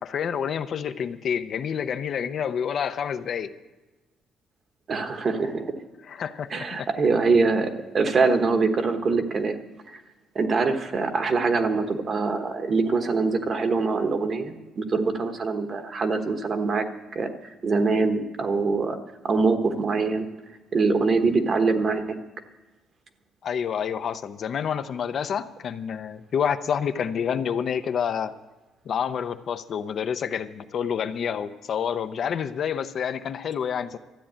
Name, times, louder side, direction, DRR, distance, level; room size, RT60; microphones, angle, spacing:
voice 1, 0.0-3.6 6.1-6.9 23.4-28.3 28.9-34.0, left 7 dB, 45° left, 10 dB, 0.6 m, -28 dB
voice 2, 4.9-5.7 6.5-9.6 9.9-10.0 10.3-16.9 17.1-17.3 17.6-19.0 19.2-20.3 20.7-22.0, right 4 dB, 35° right, 7 dB, 1.1 m, -23 dB
13.5 x 9.1 x 8.6 m, 1.1 s
cardioid pair, 155°, 0 cm